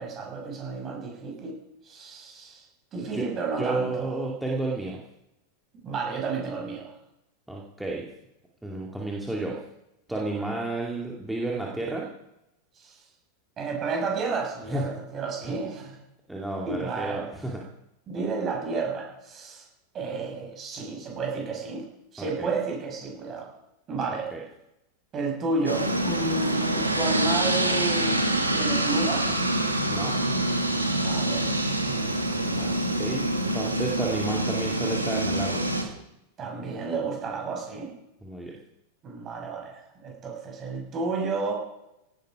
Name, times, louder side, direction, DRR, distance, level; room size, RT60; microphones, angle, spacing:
voice 1, 0.0-1.6 1.8-2.7 2.9-4.1 5.8-6.9 10.1-10.6 12.8-13.0 13.6-16.0 16.6-17.2 18.1-19.7 19.9-21.8 22.1-23.5 23.9-24.3 25.1-28.1 28.5-29.4 30.8-31.5 31.8-32.9 36.4-37.9 39.0-41.5, right 3 dB, 30° right, 0 dB, 6.4 m, -32 dB
voice 2, 3.6-5.0 7.5-8.1 8.6-9.6 10.1-12.1 14.7-14.9 15.5-15.6 16.3-17.6 22.2-22.5 24.3-24.4 29.9-30.2 33.0-33.3 33.5-35.7 38.2-38.6, right 2 dB, 5° right, -3 dB, 2.5 m, -31 dB
sound 1, 25.7-35.8, right 1 dB, 85° right, 2.1 m, -26 dB
17.5 x 14.5 x 4.9 m, 0.84 s
figure-of-eight pair, 90°, 0 cm